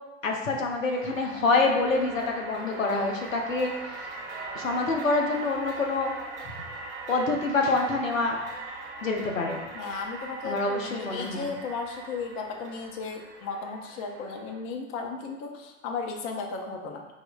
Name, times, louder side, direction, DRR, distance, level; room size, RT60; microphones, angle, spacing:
voice 1, 0.2-4.1 4.5-6.1 6.4-6.5 7.1-8.4 9.0-9.6 10.4-11.5, left 3 dB, 90° left, 1 dB, 0.6 m, -26 dB
sound 1, 0.9-14.6, right 3 dB, 30° right, 0.6 m, -41 dB
voice 2, 9.7-17.1, left 4 dB, 35° left, 2 dB, 0.5 m, -35 dB
4.7 x 2.0 x 2.2 m, 1.1 s
figure-of-eight pair, 85°, 38 cm